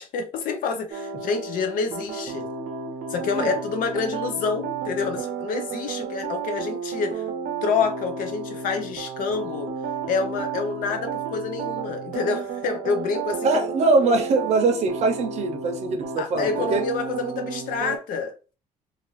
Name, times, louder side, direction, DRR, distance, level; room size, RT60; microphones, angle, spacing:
voice 1, 0.0-2.5 3.1-7.2 7.6-9.7 10.1-13.7 16.2-18.3, left 5 dB, 75° left, 0.7 m, -27 dB
sound 1, 0.9-18.0, right 5 dB, 85° right, 0.7 m, -32 dB
voice 2, 13.4-16.8, right 3 dB, 50° right, 0.7 m, -22 dB
2.8 x 2.5 x 3.1 m
cardioid pair, 175°, 14 cm